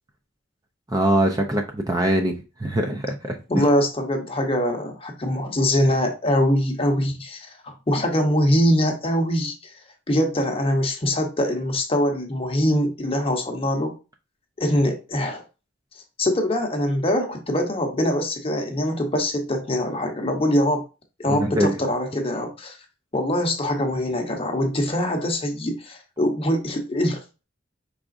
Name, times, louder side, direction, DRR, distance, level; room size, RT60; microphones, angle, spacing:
voice 1, 0.9-2.3 2.6-3.6 21.3-21.7, right 1 dB, 20° right, 0.5 m, -22 dB
voice 2, 3.5-9.5 10.1-13.9 14.6-15.4 16.2-20.8 21.2-22.8 23.1-27.2, equal, 30° left, 0.8 m, -23 dB
4.8 x 3.6 x 2.5 m
head